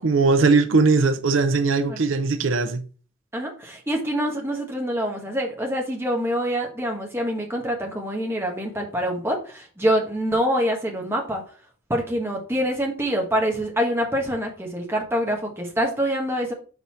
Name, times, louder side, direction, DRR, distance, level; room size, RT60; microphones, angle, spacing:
voice 1, 0.0-2.8, right 4 dB, 75° right, 0.6 m, -19 dB
voice 2, 3.3-11.4 11.9-16.5, equal, 10° right, 1.4 m, -25 dB
4.7 x 4.1 x 5.5 m
head